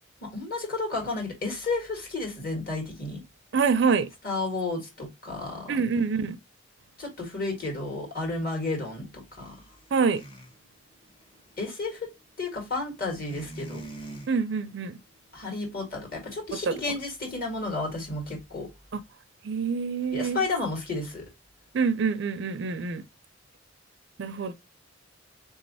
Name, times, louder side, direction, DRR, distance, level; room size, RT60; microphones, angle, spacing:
voice 1, 0.2-3.2 4.2-5.8 7.0-9.5 11.6-12.0 12.4-13.8 15.3-18.7 20.1-21.3, left 3 dB, 45° left, 1.8 m, -32 dB
voice 2, 3.5-4.1 5.7-6.4 9.9-10.2 14.3-15.0 16.7-16.8 18.9-19.0 19.4-20.4 21.7-23.0 24.2-24.5, right 5 dB, 55° right, 0.4 m, -26 dB
sound 1, 7.5-10.5 10.9-12.2 13.1-14.3 14.6-15.2 15.5-15.8, right 2 dB, 25° left, 0.8 m, -43 dB
3.7 x 3.1 x 4.0 m
head